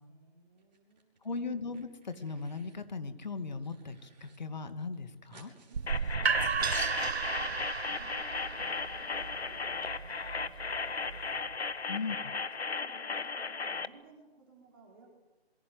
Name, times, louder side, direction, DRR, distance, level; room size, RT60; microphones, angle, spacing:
voice 1, 0.1-1.0 5.7-7.6 7.9-11.6 12.3-15.1, right 3 dB, 20° right, -1 dB, 4.4 m, -58 dB
sound 1, 0.6-1.3 1.5-2.8 3.2-4.4 4.7-4.8 4.9-6.9, right 4 dB, 40° right, 5.4 m, -62 dB
voice 2, 1.2-5.5 11.9-12.3, left 4 dB, 45° left, 9 dB, 2.4 m, -38 dB
sound 2, 5.7-11.5, right 5 dB, 80° right, 0.9 m, -34 dB
sound 3, 5.9-13.9, left 4 dB, 80° left, 1.5 m, -36 dB
27.5 x 23.5 x 8.0 m, 1.1 s
figure-of-eight pair, 170°, 31 cm